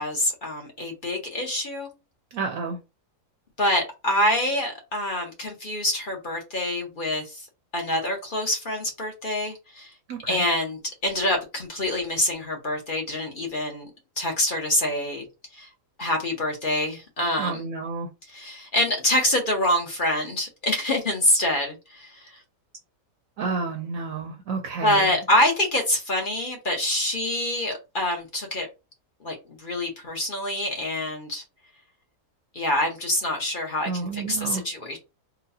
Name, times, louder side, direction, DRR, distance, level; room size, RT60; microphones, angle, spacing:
voice 1, 0.0-1.9 3.6-7.5 7.7-9.9 10.3-13.9 14.2-15.2 15.5-15.7 16.0-17.7 18.3-22.4 24.8-28.7 29.2-31.4 32.5-35.0, left 1 dB, 40° left, 0.8 m, -26 dB
voice 2, 2.3-2.8 10.1-10.4 17.4-18.1 23.4-25.1 33.9-34.6, right 4 dB, 65° right, 0.9 m, -30 dB
3.9 x 2.2 x 2.7 m
omnidirectional pair, 1.7 m